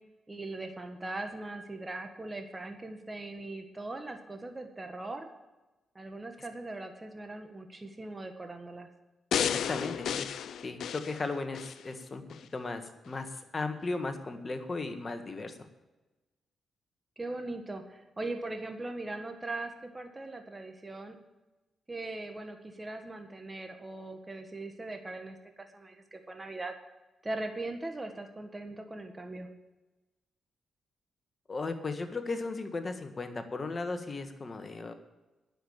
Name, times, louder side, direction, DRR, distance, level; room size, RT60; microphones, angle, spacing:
voice 1, 0.3-5.3 6.0-8.9 17.2-21.2 21.9-26.7 27.2-29.5, right 2 dB, 25° right, 5 dB, 1.7 m, -40 dB
sound 1, 9.3-11.8 12.3-12.4, left 9 dB, 75° left, 0.5 m, -32 dB
voice 2, 9.4-10.3 10.6-12.2 12.5-15.6 31.5-34.9, left 3 dB, 40° left, 7 dB, 1.6 m, -36 dB
10.0 x 7.3 x 8.7 m, 1.1 s
supercardioid pair, 55°, 0 cm